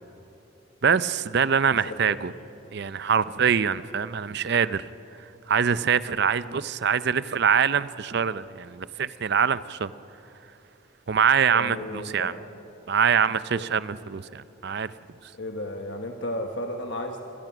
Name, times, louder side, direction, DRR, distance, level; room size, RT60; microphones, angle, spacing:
voice 1, 0.8-2.3 2.7-4.9 5.5-9.9 11.1-12.3 12.9-14.9, right 7 dB, 50° right, 16 dB, 0.5 m, -24 dB
voice 2, 1.7-2.2 11.5-12.4 13.5-13.7 15.3-17.2, left 1 dB, 60° left, 4 dB, 1.3 m, -34 dB
26.0 x 18.5 x 6.1 m, 2.9 s
head